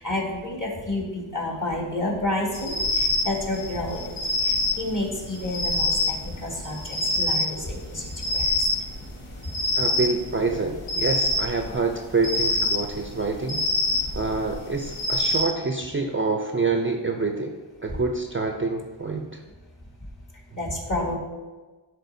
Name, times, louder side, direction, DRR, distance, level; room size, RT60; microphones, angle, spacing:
voice 1, 0.0-8.7 9.4-9.5 13.9-14.0 20.0-20.1 20.5-21.2, left 1 dB, 35° left, -2 dB, 2.0 m, -30 dB
sound 1, 2.5-15.4, left 2 dB, 80° left, 1.3 m, -26 dB
voice 2, 9.8-13.6 14.1-17.5 17.8-19.4, right 3 dB, 25° right, 3 dB, 0.5 m, -26 dB
11.0 x 4.3 x 2.7 m, 1.3 s
wide cardioid pair, 70°, 49 cm